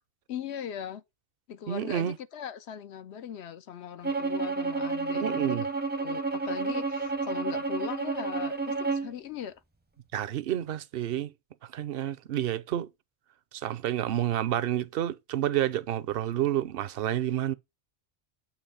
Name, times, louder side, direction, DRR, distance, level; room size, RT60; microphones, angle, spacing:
voice 1, 0.3-1.0 1.5-5.7 6.0-9.6, left 9 dB, 75° left, 1.0 m, -40 dB
voice 2, 1.7-2.2 5.1-5.7 10.1-11.3 11.7-12.9 13.5-17.5, right 12 dB, 65° right, 0.7 m, -29 dB
Bowed string instrument, 4.0-9.1, right 3 dB, 10° right, 0.5 m, -30 dB
8.5 x 3.0 x 5.5 m
omnidirectional pair, 1.1 m